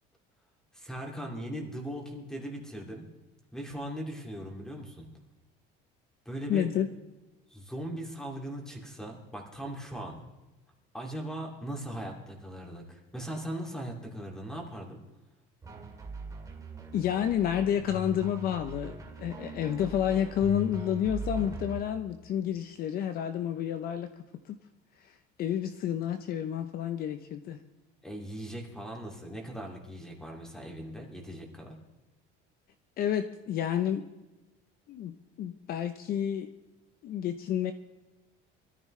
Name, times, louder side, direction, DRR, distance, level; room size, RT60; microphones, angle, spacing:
voice 1, 0.7-3.1 3.5-5.1 6.2-6.7 7.5-10.2 10.9-15.0 28.0-31.8, right 1 dB, 5° left, 1 dB, 2.6 m, -39 dB
voice 2, 6.5-6.9 16.9-24.1 24.5-24.6 25.0-27.6 33.0-34.0 34.9-36.5 37.0-37.7, left 10 dB, 50° left, 9 dB, 0.8 m, -30 dB
sound 1, 15.6-21.8, right 2 dB, 15° right, 2.2 m, -40 dB
23.0 x 13.5 x 3.3 m, 1.1 s
cardioid pair, 150°, 20 cm